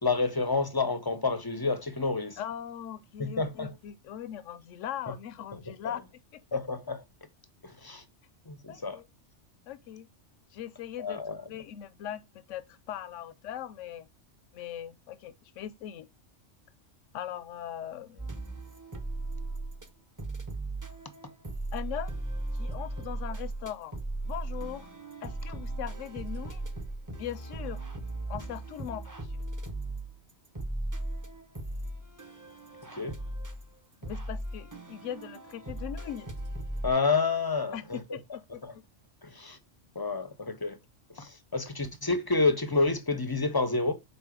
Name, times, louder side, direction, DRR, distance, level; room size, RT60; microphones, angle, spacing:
voice 1, 0.0-2.4 3.2-3.7 5.1-5.2 6.5-7.0 7.6-8.0 8.5-9.0 11.0-11.4 33.0-33.2 36.8-38.0 38.6-38.7 39.2-39.6 40.0-40.8 41.2-43.9, left 3 dB, 30° left, 0.4 m, -29 dB
voice 2, 2.4-6.0 6.3-6.6 8.7-9.1 9.7-10.1 10.5-11.2 11.5-12.2 12.5-14.1 14.5-16.1 17.1-18.3 21.7-22.2 22.5-24.0 24.2-24.9 25.2-26.6 27.2-27.8 28.3-29.4 34.0-36.3 37.7-38.6, left 10 dB, 85° left, 1.0 m, -40 dB
sound 1, 18.2-19.9 20.2-36.9, right 2 dB, 20° right, 0.6 m, -37 dB
5.3 x 4.2 x 4.9 m
omnidirectional pair, 1.3 m